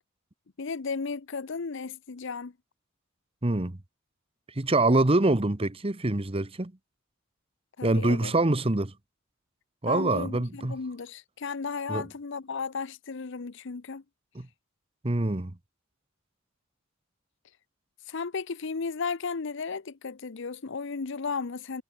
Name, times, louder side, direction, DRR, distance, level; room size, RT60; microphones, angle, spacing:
voice 1, 0.6-2.5 7.8-8.3 9.9-14.0 18.1-21.8, left 5 dB, 60° left, 0.7 m, -34 dB
voice 2, 3.4-3.8 4.6-6.7 7.8-8.9 9.8-10.8 11.9-12.0 14.3-14.5 15.0-15.5, right 2 dB, 25° right, 1.0 m, -25 dB
head